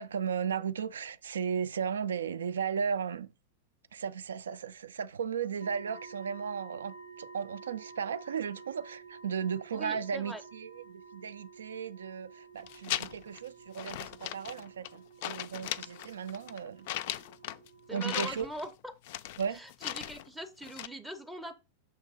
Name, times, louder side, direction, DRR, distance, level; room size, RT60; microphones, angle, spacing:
voice 1, 0.0-3.3 3.9-16.9 17.9-18.5 19.4-19.6, right 7 dB, 65° right, 0.3 m, -35 dB
sound 1, 5.6-18.1, right 4 dB, 90° right, 0.9 m, -51 dB
voice 2, 9.7-10.4 17.9-18.7 19.5-21.5, equal, 5° right, 0.7 m, -41 dB
sound 2, 12.6-13.4 13.7-15.0 15.2-17.7 17.9-18.7 19.0-20.3 20.6-20.9, left 13 dB, 50° left, 0.3 m, -38 dB
6.6 x 2.9 x 5.0 m
figure-of-eight pair, 90°, 0 cm